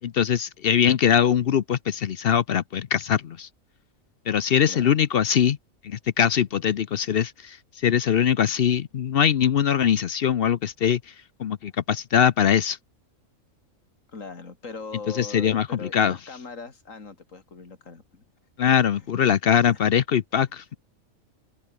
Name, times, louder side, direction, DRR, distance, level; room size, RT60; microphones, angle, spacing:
voice 1, 0.0-3.5 4.3-5.6 5.8-7.6 7.8-11.0 11.4-12.8 15.2-16.2 18.6-20.8, left 8 dB, 55° left, 0.7 m, -22 dB
voice 2, 4.7-5.0 14.1-18.2 18.7-19.3 19.7-19.8, left 4 dB, 70° left, 3.2 m, -40 dB
omnidirectional pair, 1.4 m